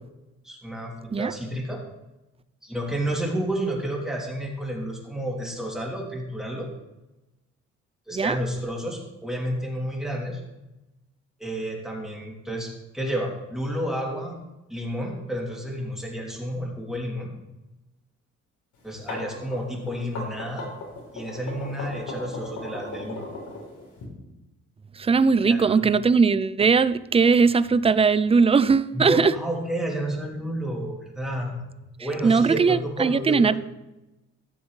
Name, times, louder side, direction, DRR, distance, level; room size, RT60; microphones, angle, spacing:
voice 1, 0.4-1.8 2.6-6.7 8.1-10.4 11.4-14.4 14.7-17.3 18.8-20.7 21.1-23.3 25.4-25.9 28.9-31.6 32.0-33.6, right 1 dB, ahead, 2.9 m, -30 dB
sound 1, 18.8-24.0, left 2 dB, 80° left, 3.6 m, -36 dB
voice 2, 24.9-29.3 32.2-33.6, right 5 dB, 20° right, 0.4 m, -19 dB
14.0 x 7.1 x 3.2 m
cardioid pair, 90°, 30 cm